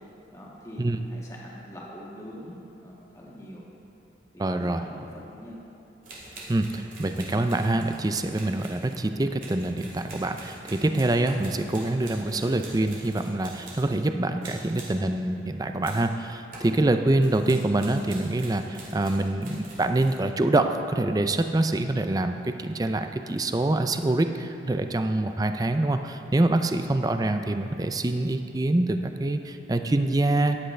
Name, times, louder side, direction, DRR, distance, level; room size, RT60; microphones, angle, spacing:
voice 1, 0.3-3.6 4.3-5.6, equal, 20° left, -5 dB, 1.7 m, -43 dB
voice 2, 4.4-4.8 6.5-30.6, right 2 dB, 20° right, 7 dB, 0.4 m, -25 dB
sound 1, 6.0-14.1 14.4-15.1 15.8-16.1 16.5-16.8 17.2-20.2, right 2 dB, 50° right, 2.3 m, -45 dB
14.0 x 10.5 x 3.3 m, 2.8 s
head